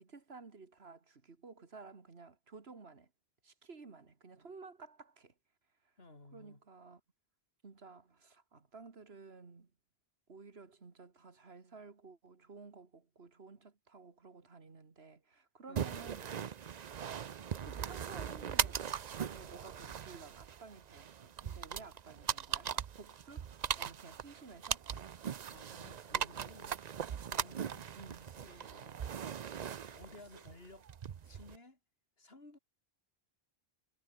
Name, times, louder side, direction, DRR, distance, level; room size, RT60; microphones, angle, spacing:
voice 1, 0.0-3.1 3.4-5.3 5.8-5.9 6.3-7.0 7.6-9.7 10.3-16.6 17.5-18.9 19.2-23.5 23.8-24.9 28.0-28.3, right 4 dB, 80° right, 2.3 m, -54 dB
voice 2, 6.0-6.6 15.7-16.1 21.7-21.9 25.3-26.8 27.3-27.9 28.4-29.1 29.8-30.9 31.3-31.8 32.2-32.6, left 2 dB, 75° left, 4.2 m, -56 dB
sound 1, 15.8-31.6, right 8 dB, 50° right, 0.7 m, -40 dB
sound 2, 24.9-25.3 26.1-26.5 27.0-27.5 28.2-28.6 29.0-29.5 30.2-30.6 31.2-31.6, right 1 dB, 20° right, 2.2 m, -64 dB
omnidirectional pair, 1.0 m